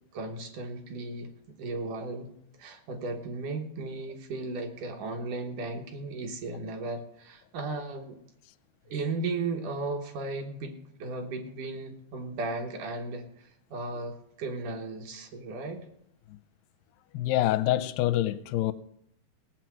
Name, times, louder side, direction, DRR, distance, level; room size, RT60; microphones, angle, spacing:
voice 1, 0.1-1.3 1.6-2.3 2.6-8.2 8.9-15.9, right 3 dB, 65° right, 2.4 m, -35 dB
voice 2, 17.1-18.7, left 14 dB, 85° left, 2.6 m, -26 dB
17.5 x 7.6 x 6.2 m
omnidirectional pair, 4.5 m